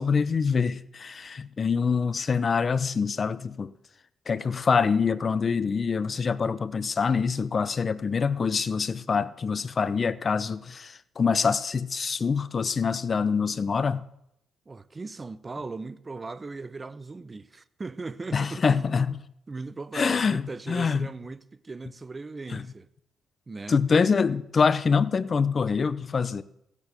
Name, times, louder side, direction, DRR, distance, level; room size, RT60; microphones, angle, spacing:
voice 1, 0.0-3.7 4.3-14.0 18.3-19.2 19.9-21.1 22.5-22.6 23.7-26.4, left 5 dB, 40° left, 0.6 m, -25 dB
voice 2, 14.7-18.9 19.5-22.9 23.5-23.8, right 3 dB, 25° right, 0.7 m, -38 dB
15.5 x 8.3 x 6.7 m
cardioid pair, 90°, 0 cm